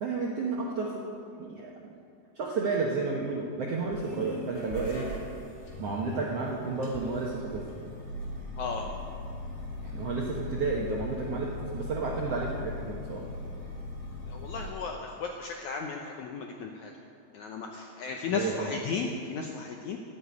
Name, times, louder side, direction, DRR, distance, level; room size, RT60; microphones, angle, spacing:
voice 1, 0.0-1.0 1.4-1.9 2.3-5.1 5.8-7.6 9.8-13.2 18.3-18.5, right 4 dB, 70° right, -2 dB, 1.4 m, -31 dB
sound 1, 3.8-14.7, left 2 dB, 30° left, 2.8 m, -39 dB
voice 2, 14.3-16.9 17.3-20.0, left 5 dB, 80° left, 2 dB, 1.7 m, -35 dB
14.0 x 7.0 x 9.4 m, 2.5 s
omnidirectional pair, 4.3 m